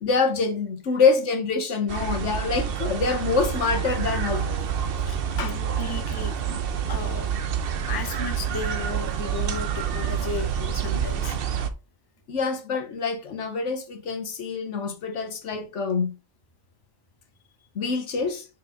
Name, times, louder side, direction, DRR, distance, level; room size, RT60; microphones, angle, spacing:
voice 1, 0.0-4.5 5.4-5.5 12.3-16.1 17.7-18.4, left 4 dB, 60° left, 1.3 m, -25 dB
sound 1, 1.9-11.7, right 8 dB, 55° right, 0.7 m, -28 dB
voice 2, 5.1-6.6 6.9-7.3 7.9-11.4, left 4 dB, 20° left, 0.7 m, -35 dB
5.9 x 4.7 x 3.7 m
omnidirectional pair, 1.4 m